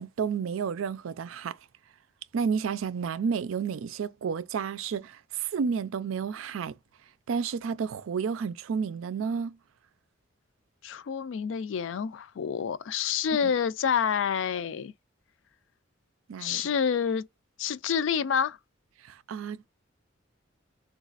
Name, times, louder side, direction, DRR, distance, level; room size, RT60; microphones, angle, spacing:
voice 1, 0.0-1.6 2.3-6.7 7.3-9.6 13.4-13.5 16.3-16.6 19.0-19.7, right 6 dB, 90° right, 0.4 m, -31 dB
voice 2, 10.8-14.9 16.4-17.3 17.6-18.6, left 7 dB, 70° left, 0.3 m, -28 dB
3.9 x 2.4 x 2.4 m
head